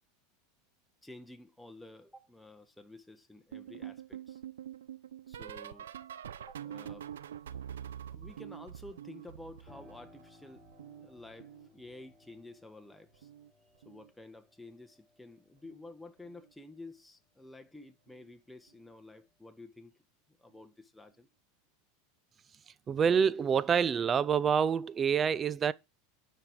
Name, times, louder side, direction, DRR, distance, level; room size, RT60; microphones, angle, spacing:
voice 1, 1.0-4.4 5.3-5.9 6.4-7.1 8.1-10.7 11.0-13.3 13.8-19.9 20.4-21.3 23.4-23.6, left 2 dB, 5° left, 1.5 m, -51 dB
sound 1, 3.5-10.3 10.6-12.1 13.1-13.5 13.7-14.1 15.6-15.9 16.2-16.5 18.1-18.2, right 10 dB, 85° right, 0.6 m, -46 dB
Piano, 9.7-18.1 18.5-19.6, left 2 dB, 25° left, 5.8 m, -63 dB
voice 2, 22.9-25.7, right 7 dB, 30° right, 0.6 m, -27 dB
9.8 x 5.4 x 4.8 m
hypercardioid pair, 100°, 0 cm